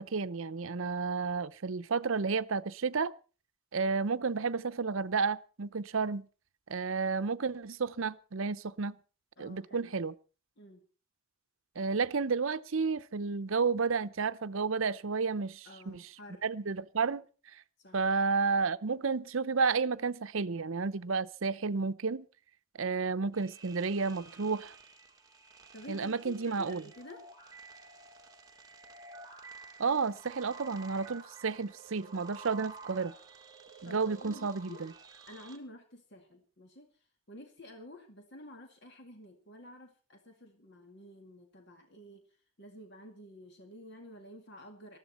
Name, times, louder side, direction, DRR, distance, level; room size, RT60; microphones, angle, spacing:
voice 1, 0.0-3.1 3.7-6.3 6.7-9.0 9.4-10.1 11.8-16.0 16.4-17.2 17.9-22.3 22.8-24.7 25.9-26.8 29.8-33.1 33.8-34.9, right 4 dB, 70° right, 0.7 m, -31 dB
voice 2, 9.4-9.9 10.6-10.8 15.6-16.4 17.8-18.0 25.7-27.2 33.8-34.9 35.3-42.3 42.6-45.0, left 1 dB, 50° left, 2.1 m, -51 dB
sound 1, 23.3-35.6, right 4 dB, 15° right, 1.9 m, -51 dB
19.5 x 14.0 x 4.3 m
head